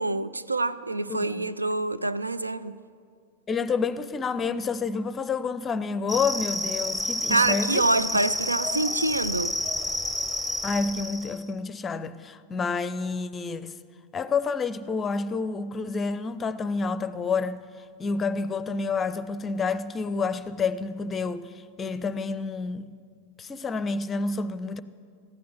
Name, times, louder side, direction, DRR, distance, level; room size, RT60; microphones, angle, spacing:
voice 1, 0.0-2.8 7.3-9.5, right 2 dB, 80° right, 0.4 m, -26 dB
voice 2, 1.1-1.5 3.5-7.8 10.6-13.7 14.1-17.6 18.0-21.5 21.8-22.9 23.4-24.8, left 4 dB, 20° left, 0.5 m, -29 dB
sound 1, 6.1-11.4, left 2 dB, 5° right, 0.9 m, -30 dB
14.5 x 9.5 x 8.0 m
figure-of-eight pair, 90°, 0 cm